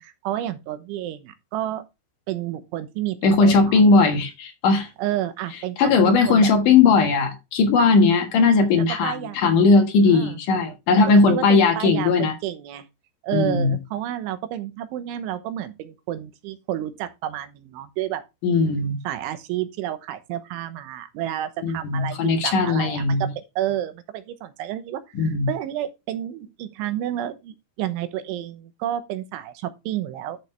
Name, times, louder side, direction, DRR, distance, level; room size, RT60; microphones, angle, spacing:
voice 1, 0.0-1.8 2.3-3.8 5.0-6.5 8.8-9.4 10.1-10.4 10.9-11.0 11.3-12.9 13.2-18.2 19.1-30.4, right 12 dB, 80° right, 3.4 m, -30 dB
voice 2, 3.2-4.9 5.8-12.4 13.3-13.8 18.4-19.0 21.6-23.3 25.2-25.5, left 4 dB, 60° left, 2.3 m, -18 dB
11.5 x 6.6 x 3.2 m
omnidirectional pair, 5.5 m